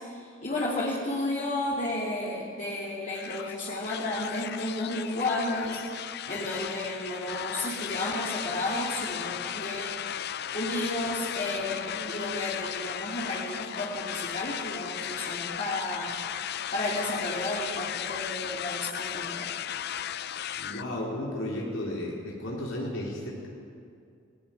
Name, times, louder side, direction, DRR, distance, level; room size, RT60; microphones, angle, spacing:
voice 1, 0.0-10.0 10.5-16.2 16.7-19.6, left 1 dB, 40° left, -5 dB, 2.8 m, -32 dB
sound 1, 3.1-20.8, left 10 dB, 55° left, 0.5 m, -36 dB
voice 2, 20.6-23.5, left 1 dB, 85° left, -4 dB, 4.2 m, -34 dB
18.5 x 17.5 x 9.2 m, 2.4 s
head